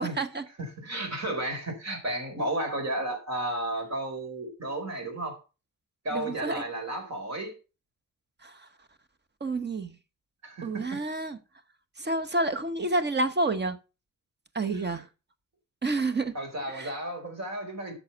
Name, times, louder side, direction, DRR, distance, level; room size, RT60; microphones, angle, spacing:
voice 1, 0.0-0.4 6.1-6.6 8.4-8.6 9.4-9.9 10.6-11.4 12.0-13.8 14.5-15.1 15.8-16.3 16.7-16.9, right 2 dB, 30° right, 1.1 m, -29 dB
voice 2, 0.6-5.4 6.0-7.6 10.4-11.0 14.7-15.0 16.3-17.9, right 1 dB, 50° right, 4.3 m, -33 dB
10.5 x 6.4 x 5.7 m
wide cardioid pair, 115°, 33 cm